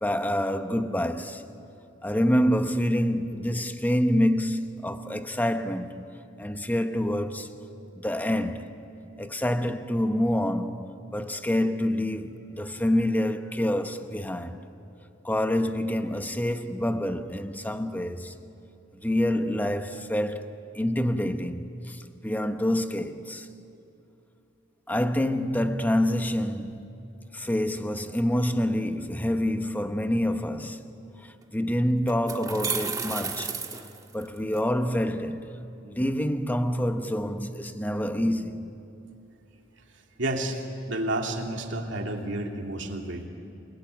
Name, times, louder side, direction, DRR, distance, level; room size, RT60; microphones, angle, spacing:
voice 1, 0.0-1.4 2.0-6.0 6.4-7.5 7.9-8.7 9.2-14.7 15.2-18.4 18.9-23.5 24.9-26.9 27.3-30.8 31.2-33.6 34.1-35.5 35.8-38.7, left 1 dB, 10° left, 1.0 m, -27 dB
getting ice, 31.4-31.5 32.1-34.6, right 5 dB, 20° right, 1.4 m, -32 dB
voice 2, 40.2-40.6 40.9-43.3, right 1 dB, 70° right, 2.6 m, -30 dB
29.0 x 20.0 x 9.3 m
head